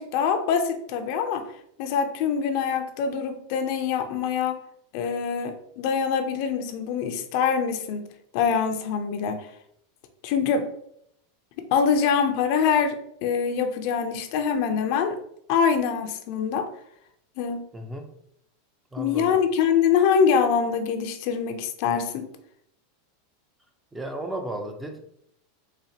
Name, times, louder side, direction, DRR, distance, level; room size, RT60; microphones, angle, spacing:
voice 1, 0.0-1.5 1.8-4.6 4.9-9.5 10.2-10.7 11.7-15.2 15.5-16.7 17.4-17.7 19.0-22.3, left 6 dB, 60° left, 6 dB, 0.5 m, -24 dB
voice 2, 17.7-18.1 18.9-19.4 23.9-25.0, right 1 dB, 10° right, 5 dB, 0.5 m, -34 dB
4.1 x 2.5 x 2.7 m, 0.71 s
hypercardioid pair, 120°, 0 cm